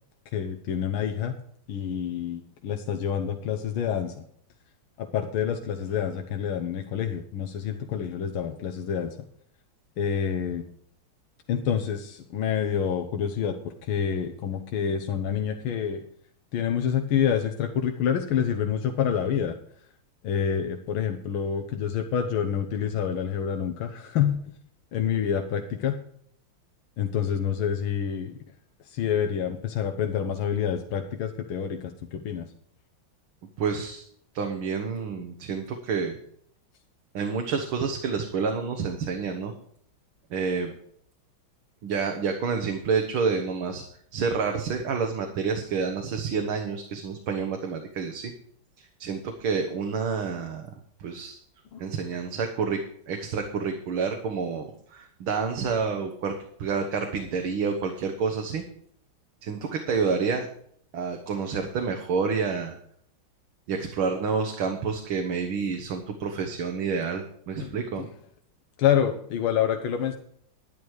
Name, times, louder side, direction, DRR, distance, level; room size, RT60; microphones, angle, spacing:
voice 1, 0.3-1.4 1.7-4.2 5.0-9.2 10.0-10.6 11.5-16.0 16.5-19.6 20.2-24.4 24.9-26.0 27.0-28.4 28.8-32.5 51.7-51.8 67.6-67.7 68.0-68.1 68.8-70.1, left 8 dB, 80° left, 5 dB, 1.8 m, -27 dB
voice 2, 33.6-34.0 34.3-36.2 37.1-39.5 40.3-40.7 41.8-43.8 44.1-48.3 48.8-50.7 51.0-51.4 51.8-52.8 53.1-56.3 56.6-58.6 59.4-60.5 60.9-62.8 63.7-68.1, right 5 dB, 75° right, 4 dB, 2.0 m, -28 dB
11.0 x 10.5 x 4.8 m, 0.63 s
omnidirectional pair, 2.3 m